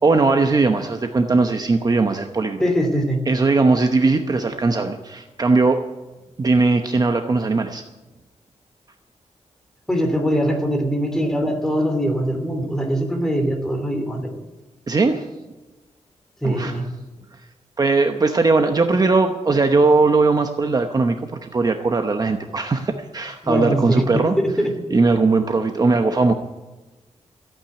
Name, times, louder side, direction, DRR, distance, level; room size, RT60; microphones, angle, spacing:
voice 1, 0.0-2.6 3.3-5.8 6.4-7.8 14.9-15.3 16.4-16.8 17.8-24.4 24.9-26.3, right 3 dB, 30° right, 6 dB, 0.8 m, -19 dB
voice 2, 2.6-3.2 9.9-14.3 16.4-16.9 23.4-24.8, equal, 5° left, 3 dB, 3.0 m, -22 dB
14.5 x 9.0 x 9.9 m, 1.1 s
wide cardioid pair, 150°, 12 cm